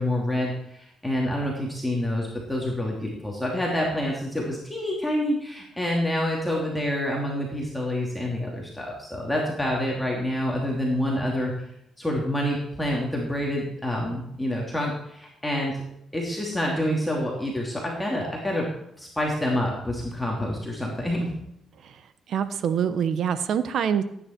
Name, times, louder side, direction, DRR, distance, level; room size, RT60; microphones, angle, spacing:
voice 1, 0.0-11.5 12.0-15.8 16.1-18.7 19.0-21.3, left 1 dB, 5° left, -3 dB, 2.9 m, -27 dB
voice 2, 22.3-24.0, right 8 dB, 65° right, 12 dB, 1.1 m, -25 dB
15.0 x 9.7 x 4.5 m, 0.78 s
cardioid pair, 90°, 0 cm